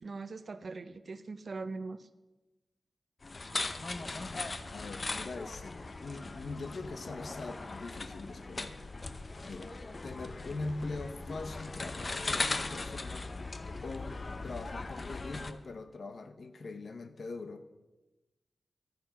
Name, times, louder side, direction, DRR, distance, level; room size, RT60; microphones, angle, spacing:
voice 1, 0.0-2.1, right 3 dB, 55° right, 12 dB, 0.7 m, -41 dB
sound 1, 3.2-15.5, left 3 dB, 40° left, 0.7 m, -39 dB
voice 2, 4.7-8.8 9.4-13.3 13.8-14.2 14.4-17.6, left 3 dB, 65° left, 9 dB, 1.0 m, -42 dB
12.0 x 9.4 x 5.8 m, 1.1 s
wide cardioid pair, 95°, 0 cm